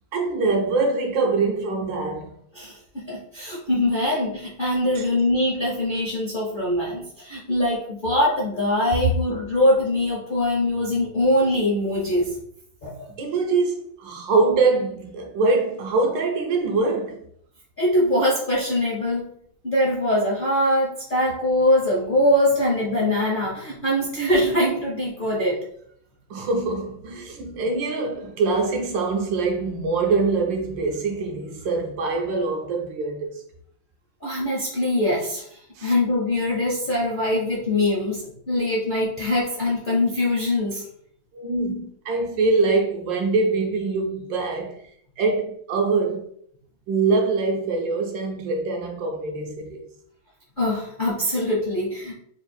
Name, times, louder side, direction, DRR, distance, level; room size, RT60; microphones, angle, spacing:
voice 1, 0.1-2.3 4.9-5.0 13.2-17.2 26.3-33.4 35.8-35.9 41.3-44.8 45.2-46.3 46.9-49.8, right 3 dB, 70° right, 1.2 m, -24 dB
voice 2, 2.5-12.3 12.8-13.1 17.8-19.3 19.6-25.6 34.2-35.4 35.8-40.8 50.6-52.1, left 1 dB, 40° left, 0.7 m, -23 dB
3.6 x 2.4 x 4.3 m
omnidirectional pair, 2.2 m